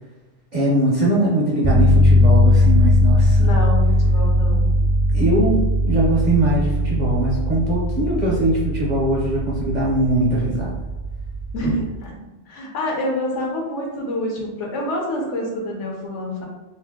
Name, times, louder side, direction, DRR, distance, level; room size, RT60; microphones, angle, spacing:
voice 1, 0.5-3.5 5.1-10.7, right 1 dB, 50° right, -5 dB, 0.6 m, -21 dB
sound 1, 1.6-11.8, left 1 dB, 5° right, 0.3 m, -19 dB
voice 2, 3.4-4.7 11.5-12.1 12.5-16.4, left 1 dB, 70° left, -2 dB, 1.1 m, -27 dB
2.7 x 2.6 x 3.5 m, 1.1 s
omnidirectional pair, 1.3 m